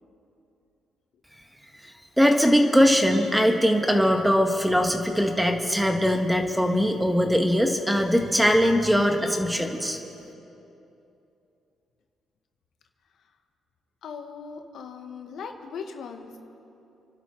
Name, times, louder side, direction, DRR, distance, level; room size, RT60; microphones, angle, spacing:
voice 1, 2.2-10.0, equal, 5° right, 4 dB, 1.6 m, -21 dB
voice 2, 14.0-16.3, left 6 dB, 70° left, 5 dB, 1.2 m, -38 dB
29.0 x 12.0 x 3.9 m, 2.8 s
cardioid pair, 90°, 0 cm